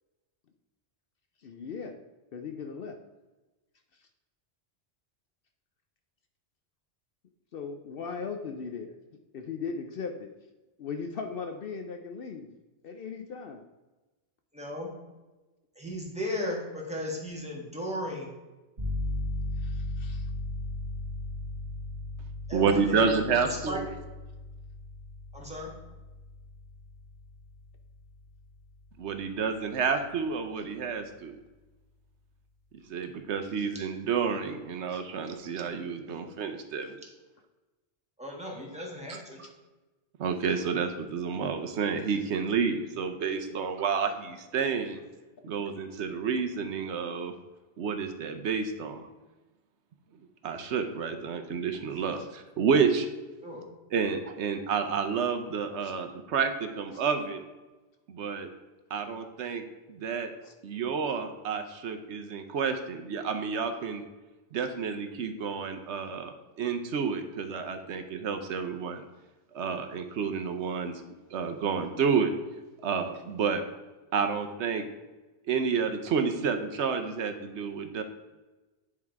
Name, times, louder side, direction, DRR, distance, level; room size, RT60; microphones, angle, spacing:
voice 1, 1.4-2.0 2.3-3.0 7.5-8.9 9.3-10.3 10.8-12.5 12.8-13.6 19.6-20.3 34.9-35.0 52.2-52.3 55.8-55.9 56.9-57.0 60.4-60.5, left 5 dB, 60° left, 5 dB, 0.7 m, -38 dB
voice 2, 14.5-14.9 15.7-18.3 22.5-23.8 25.3-25.7 38.2-39.4 53.4-53.6, left 1 dB, 5° right, -2 dB, 1.6 m, -36 dB
sound 1, 18.8-29.3, left 2 dB, 40° right, 2.0 m, -37 dB
voice 3, 22.5-23.8 29.0-31.4 32.9-37.0 39.1-39.2 40.2-45.0 45.4-47.3 47.8-49.0 50.4-53.1 53.9-57.4 58.1-58.5 58.9-59.6 59.9-60.3 60.6-64.0 64.5-69.0 69.5-71.0 71.3-72.3 72.8-73.6 74.1-74.8 75.5-78.0, right 6 dB, 75° right, 7 dB, 1.0 m, -30 dB
9.6 x 3.6 x 4.6 m, 1.1 s
omnidirectional pair, 1.2 m